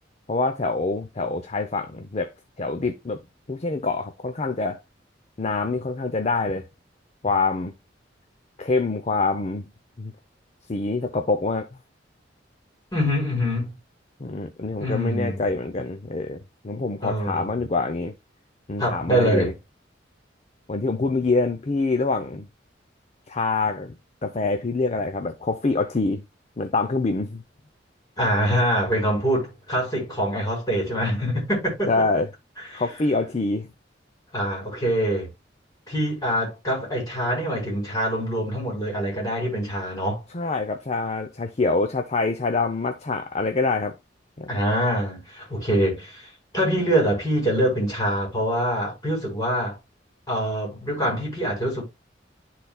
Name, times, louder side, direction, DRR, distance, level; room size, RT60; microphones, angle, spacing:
voice 1, 0.3-2.3 2.6-3.2 3.5-4.8 5.4-6.7 7.2-7.7 8.6-9.7 10.0-10.1 10.7-11.7 14.2-18.1 18.7-19.5 20.7-22.5 23.3-23.9 24.2-26.2 26.6-27.4 31.9-32.3 32.7-33.7 40.3-44.0 44.4-44.6, left 3 dB, 35° left, 0.6 m, -25 dB
voice 2, 12.9-13.7 14.8-15.5 17.0-17.6 18.8-19.5 28.2-32.0 32.7-32.8 34.3-35.3 35.9-40.2 44.5-49.8 50.3-51.8, equal, 20° left, 4.1 m, -24 dB
12.0 x 4.1 x 2.3 m
head